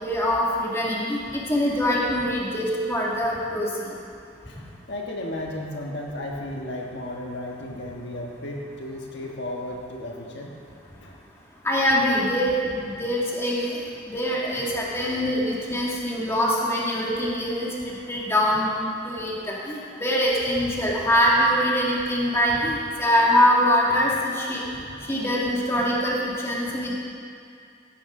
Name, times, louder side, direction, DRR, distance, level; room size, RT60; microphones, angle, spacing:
voice 1, 0.0-3.7 11.6-13.8 14.0-18.7 19.1-24.6 25.1-26.9, equal, 15° left, -5 dB, 2.1 m, -23 dB
voice 2, 4.5-10.5 11.0-11.2 22.6-22.7 24.0-24.1 24.8-25.1, left 1 dB, 70° left, -1 dB, 1.4 m, -34 dB
16.0 x 11.5 x 3.8 m, 2.5 s
head